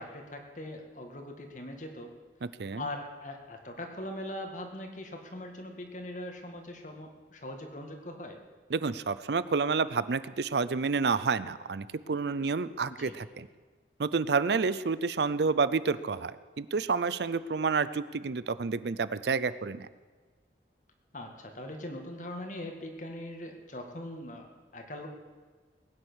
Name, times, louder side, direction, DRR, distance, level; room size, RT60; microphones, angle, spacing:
voice 1, 0.0-2.1 2.8-8.4 12.9-13.1 21.1-25.1, left 1 dB, 45° left, 4 dB, 2.1 m, -41 dB
voice 2, 8.7-13.5 14.0-19.9, right 4 dB, 65° right, 16 dB, 0.5 m, -29 dB
20.5 x 9.7 x 6.3 m, 1.4 s
head